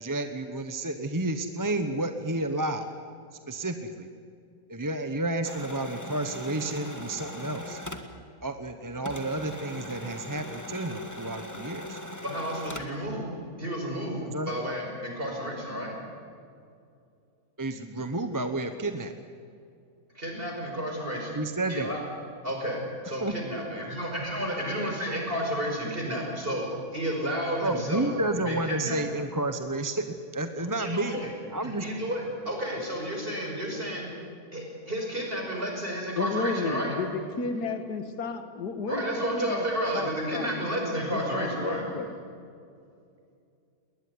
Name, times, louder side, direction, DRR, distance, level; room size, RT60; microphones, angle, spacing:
voice 1, 0.0-2.9 3.5-4.1 4.7-7.8 8.4-12.0 12.9-13.0 14.3-14.5 17.6-19.1 21.3-21.9 23.2-23.3 27.6-31.2 31.5-31.8, right 2 dB, 15° right, 7 dB, 0.8 m, -31 dB
sound 1, 5.4-8.7 9.0-13.0, left 1 dB, 10° left, 1.5 m, -40 dB
voice 2, 12.2-16.0 20.1-21.4 21.7-22.0 22.4-26.7 26.9-28.1 28.4-29.0 30.6-31.3 31.6-34.1 34.5-37.1 38.9-42.0, equal, 35° right, 0 dB, 5.7 m, -31 dB
voice 3, 36.2-39.7 39.9-40.5 41.1-42.1, left 4 dB, 80° left, 8 dB, 2.2 m, -32 dB
20.5 x 20.0 x 9.6 m, 2.4 s
omnidirectional pair, 1.7 m